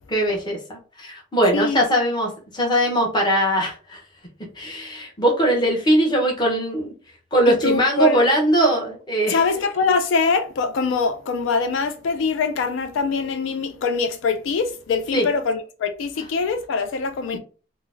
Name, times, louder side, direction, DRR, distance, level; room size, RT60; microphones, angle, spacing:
voice 1, 0.1-4.0 4.6-6.9 7.3-9.4 15.1-15.3, right 1 dB, 25° left, 0.8 m, -20 dB
voice 2, 7.6-8.2 9.3-17.4, left 4 dB, 80° left, 0.3 m, -23 dB
3.7 x 2.0 x 2.4 m
head